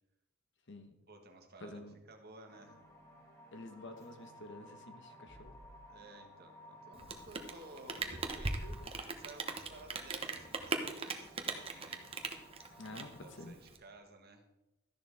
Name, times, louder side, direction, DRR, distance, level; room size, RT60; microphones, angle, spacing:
voice 1, 1.1-1.8 2.1-2.8 5.9-8.8 9.1-12.1 12.5-12.6 12.9-14.4, right 2 dB, 45° right, 4 dB, 1.6 m, -55 dB
voice 2, 1.6-2.0 3.5-5.5 12.8-13.1 13.4-13.6, left 1 dB, 60° left, 7 dB, 1.2 m, -49 dB
sound 1, 2.5-13.5, equal, 15° left, 2.6 m, -57 dB
Rain, 6.9-13.8, right 3 dB, 25° right, 1.0 m, -39 dB
13.0 x 10.5 x 3.6 m, 0.96 s
head